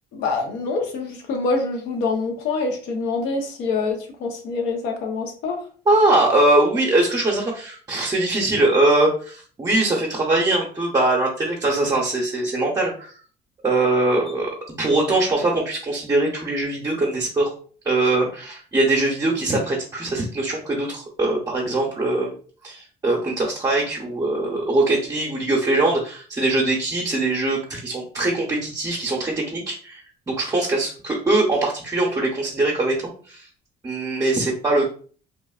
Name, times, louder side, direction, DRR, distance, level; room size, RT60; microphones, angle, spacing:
voice 1, 0.1-5.6, left 3 dB, 90° left, 3 dB, 0.8 m, -25 dB
voice 2, 5.9-13.1 13.6-14.5 14.8-17.5 17.8-22.3 22.6-30.0 30.3-33.5 33.8-34.9, right 2 dB, 20° right, -2 dB, 0.7 m, -22 dB
3.0 x 2.4 x 2.3 m, 0.43 s
cardioid pair, 110°, 17 cm